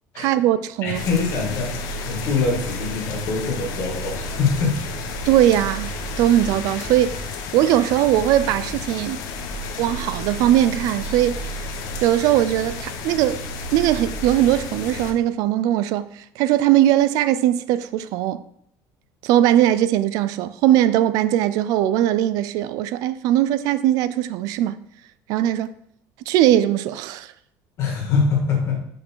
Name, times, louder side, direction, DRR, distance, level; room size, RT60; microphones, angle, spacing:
voice 1, 0.2-1.0 5.3-5.9 6.2-9.2 9.8-11.5 12.0-13.4 13.7-18.4 19.2-24.8 25.3-25.7 26.3-27.3, right 12 dB, 60° right, 0.3 m, -20 dB
voice 2, 0.8-4.8 27.8-28.8, left 5 dB, 40° left, 2.1 m, -23 dB
sound 1, 0.9-15.1, left 2 dB, 60° left, 0.9 m, -31 dB
5.6 x 5.2 x 4.6 m
cardioid pair, 175°, 7 cm